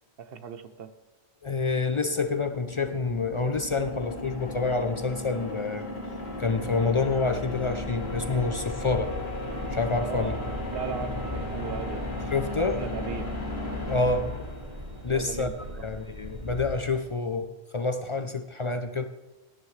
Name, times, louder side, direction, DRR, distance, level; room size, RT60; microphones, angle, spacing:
voice 1, 0.2-0.9 10.0-10.3 10.7-12.1 12.6-13.3 15.1-15.8, right 6 dB, 65° right, 11 dB, 0.9 m, -37 dB
voice 2, 1.4-5.9 6.4-9.1 9.7-10.3 12.3-12.8 13.9-14.3 15.0-15.5 15.8-19.0, left 3 dB, 45° left, 9 dB, 0.4 m, -27 dB
sound 1, 2.1-15.2, left 2 dB, 70° left, 2.2 m, -35 dB
sound 2, 7.5-16.9, left 1 dB, 40° right, 2.1 m, -40 dB
17.5 x 10.0 x 3.2 m, 1.1 s
omnidirectional pair, 1.1 m